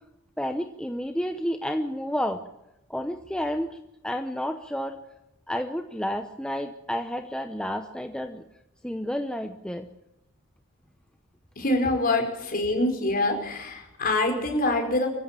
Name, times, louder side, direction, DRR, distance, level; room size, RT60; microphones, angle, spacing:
voice 1, 0.4-2.4 2.9-3.8 4.0-5.0 5.5-8.4 8.8-9.9, equal, 5° left, 6 dB, 0.8 m, -30 dB
voice 2, 11.6-15.1, left 2 dB, 45° left, 3 dB, 5.1 m, -25 dB
25.0 x 15.0 x 7.5 m, 0.93 s
head